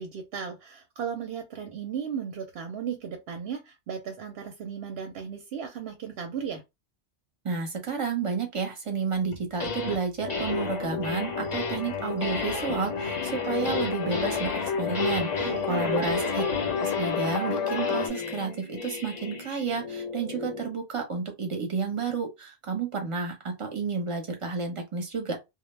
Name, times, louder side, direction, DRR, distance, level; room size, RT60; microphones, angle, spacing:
voice 1, 0.0-6.6 15.4-16.3, right 7 dB, 65° right, 0.7 m, -36 dB
voice 2, 7.4-16.4 16.8-25.4, right 5 dB, 35° right, 0.6 m, -31 dB
sound 1, 9.3-10.0 10.3-20.7, left 4 dB, 50° left, 0.5 m, -35 dB
sound 2, 10.2-18.1, left 5 dB, 85° left, 0.9 m, -30 dB
2.1 x 2.0 x 3.1 m
omnidirectional pair, 1.2 m